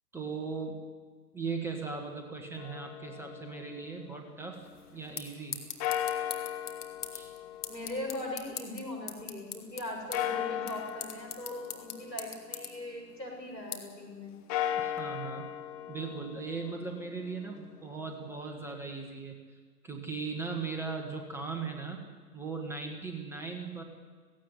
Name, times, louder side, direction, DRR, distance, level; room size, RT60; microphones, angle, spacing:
voice 1, 0.1-0.8 1.3-4.7 4.9-5.6 7.1-7.3 14.8-15.5 15.9-19.4 19.8-22.0 22.3-23.8, right 4 dB, 5° right, 2 dB, 1.5 m, -38 dB
sound 1, 2.6-4.7 5.8-9.2 10.1-13.1 14.3-18.3, left 11 dB, 20° left, 1.1 m, -38 dB
sound 2, 4.5-15.0, left 6 dB, 65° left, 2.8 m, -44 dB
voice 2, 7.7-14.3, left 1 dB, 85° left, 2 dB, 7.7 m, -40 dB
16.5 x 16.5 x 9.8 m, 1.5 s
figure-of-eight pair, 125°, 49 cm